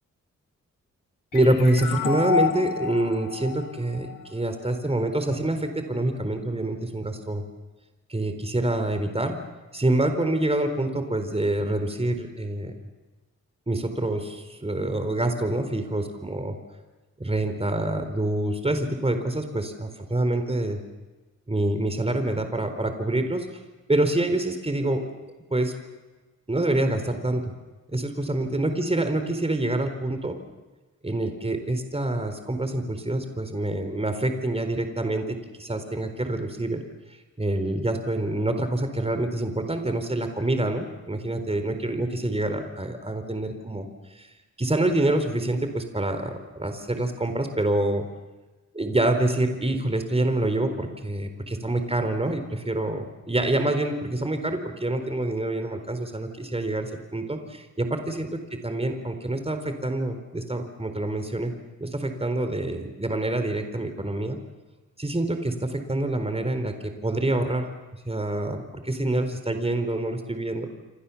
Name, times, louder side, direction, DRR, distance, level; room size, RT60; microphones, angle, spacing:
sound 1, 1.3-4.7, left 6 dB, 80° left, 3.3 m, -29 dB
voice 1, 1.3-7.4 8.1-9.4 9.7-12.7 13.7-16.6 17.2-20.8 21.5-23.5 23.9-25.0 25.5-25.7 26.5-27.5 27.9-30.4 31.0-36.8 37.4-43.9 44.2-44.3 44.6-48.0 48.7-58.3 58.6-61.5 61.8-64.4 65.0-70.7, right 1 dB, 20° right, 7 dB, 4.1 m, -26 dB
29.0 x 25.0 x 7.2 m, 1.2 s
cardioid pair, 75°, 31 cm